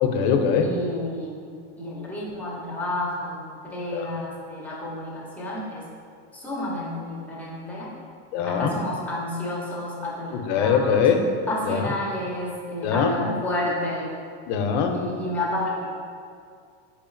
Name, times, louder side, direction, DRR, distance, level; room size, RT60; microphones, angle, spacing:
voice 1, 0.0-0.7 3.9-4.0 8.3-8.7 10.5-11.2 11.7-11.8 12.8-13.1 14.5-14.9, left 7 dB, 65° left, 5 dB, 0.5 m, -21 dB
voice 2, 0.6-5.8 6.3-7.9 8.4-11.1 11.5-14.1 14.9-15.9, left 1 dB, 5° left, -6 dB, 0.5 m, -30 dB
4.4 x 2.9 x 2.5 m, 2.2 s
supercardioid pair, 145°, 36 cm